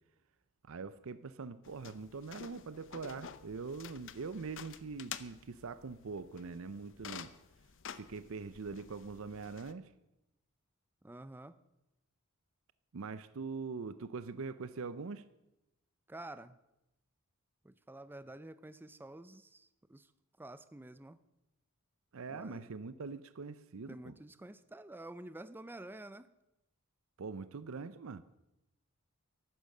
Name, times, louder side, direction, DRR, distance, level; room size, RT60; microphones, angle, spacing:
voice 1, 0.7-7.3 8.0-9.9 12.9-15.2 22.1-24.2 27.2-28.2, right 4 dB, 65° right, 0.6 m, -43 dB
sound 1, 1.6-9.7, left 8 dB, 60° left, 0.8 m, -50 dB
voice 2, 11.0-11.6 16.1-16.6 17.6-20.1 20.4-21.2 22.3-22.7 23.9-26.3, right 1 dB, 10° right, 0.4 m, -49 dB
14.0 x 12.0 x 6.6 m
head